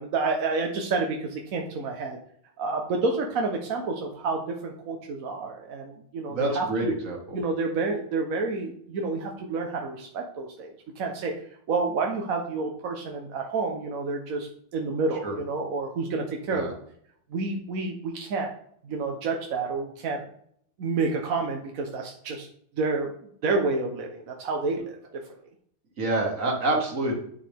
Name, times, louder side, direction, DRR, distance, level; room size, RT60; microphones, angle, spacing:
voice 1, 0.0-2.2 2.6-6.9 7.3-10.7 11.0-11.3 11.7-16.7 17.3-18.5 18.8-20.2 20.8-22.5 22.8-23.1 23.4-25.0, right 3 dB, 55° right, 2 dB, 1.0 m, -29 dB
voice 2, 6.3-7.4 15.2-15.4 16.5-16.7 26.0-27.2, right 2 dB, 40° right, 0 dB, 1.9 m, -27 dB
10.0 x 4.8 x 3.4 m, 0.66 s
omnidirectional pair, 2.4 m